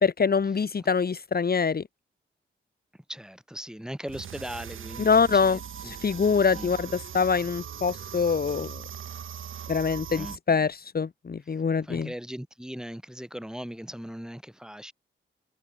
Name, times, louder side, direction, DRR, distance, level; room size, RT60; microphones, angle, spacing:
voice 1, 0.0-1.8 5.0-5.6 5.9-8.8 9.7-12.1, left 5 dB, 50° left, 2.1 m, -24 dB
voice 2, 3.1-5.9 6.5-6.7 10.2-10.4 11.5-14.9, equal, 5° right, 7.9 m, -39 dB
sound 1, 4.1-10.4, right 9 dB, 85° right, 6.1 m, -40 dB
cardioid pair, 70°, 20 cm